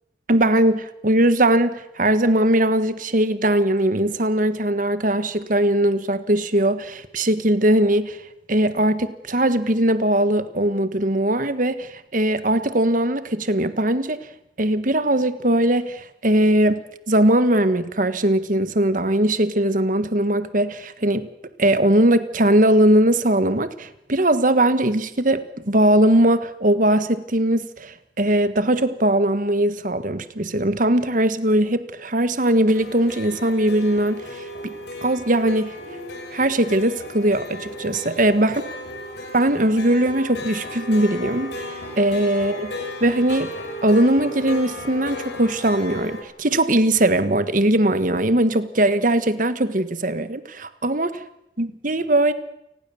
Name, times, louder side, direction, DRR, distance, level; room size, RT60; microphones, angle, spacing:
voice 1, 0.3-8.2 8.5-14.2 14.6-21.3 21.6-34.7 35.0-35.7 36.3-38.5 39.3-41.5 42.0-42.7 43.0-43.5 43.8-51.2 51.6-52.3, right 1 dB, 45° right, 1.6 m, -20 dB
sound 1, 32.7-46.2, left 1 dB, 65° left, 5.2 m, -34 dB
29.0 x 20.0 x 7.2 m
head